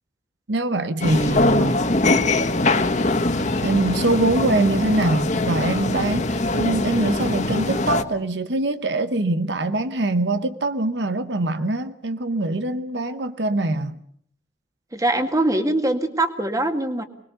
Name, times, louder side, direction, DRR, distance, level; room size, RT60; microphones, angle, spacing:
voice 1, 0.5-1.8 3.6-14.0, right 2 dB, 70° right, 1.0 m, -23 dB
sound 1, 1.0-8.0, left 2 dB, 40° left, 1.4 m, -22 dB
voice 2, 14.9-17.0, right 1 dB, 20° right, 1.9 m, -22 dB
25.0 x 21.0 x 6.9 m
head